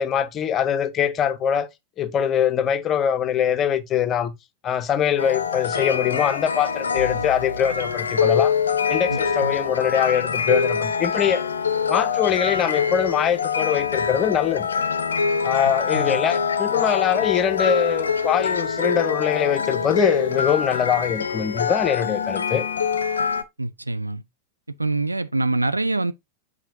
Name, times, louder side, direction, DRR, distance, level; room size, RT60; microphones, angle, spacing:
voice 1, 0.0-1.7 2.0-4.3 4.6-8.5 8.9-11.5 11.9-14.7 15.4-22.7, left 9 dB, 30° left, 0.6 m, -23 dB
sound 1, 5.2-23.4, left 6 dB, 70° left, 0.5 m, -24 dB
voice 2, 9.1-9.5 15.9-16.2 23.6-24.2 24.8-26.1, right 2 dB, 85° right, 0.3 m, -25 dB
7.4 x 4.9 x 2.6 m
figure-of-eight pair, 90°, 0 cm